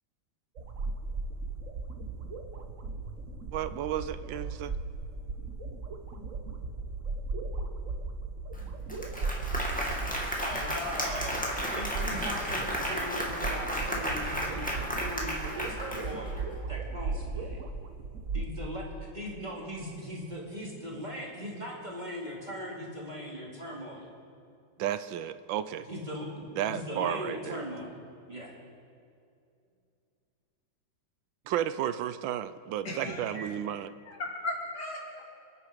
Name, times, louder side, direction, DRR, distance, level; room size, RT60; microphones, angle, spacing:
sound 1, 0.6-18.5, right 3 dB, 45° right, 1.3 m, -37 dB
voice 1, 3.5-4.7 24.8-25.9 26.6-27.6 31.5-33.9, right 11 dB, 80° right, 13 dB, 1.3 m, -33 dB
Applause, 8.5-8.6 8.9-16.4, equal, 5° left, 1.9 m, -33 dB
voice 2, 10.4-11.5 11.7-17.6 18.3-24.1 25.8-27.9 28.3-28.5, equal, 25° right, -3 dB, 2.5 m, -39 dB
voice 3, 32.9-33.5 34.1-35.2, left 2 dB, 60° left, -3 dB, 3.7 m, -36 dB
27.5 x 9.7 x 5.0 m, 2.5 s
omnidirectional pair, 2.1 m